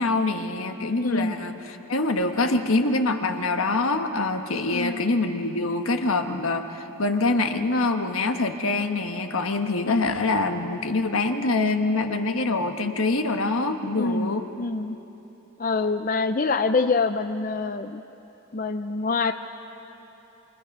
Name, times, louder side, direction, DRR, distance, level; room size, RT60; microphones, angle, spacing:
voice 1, 0.0-14.4, left 2 dB, 85° left, 6 dB, 1.4 m, -25 dB
voice 2, 1.0-1.3 4.7-5.0 9.8-10.0 14.0-14.3 14.6-15.0 15.6-18.0 18.5-19.3, left 3 dB, 40° left, 8 dB, 0.5 m, -25 dB
28.5 x 25.5 x 5.5 m, 3.0 s
head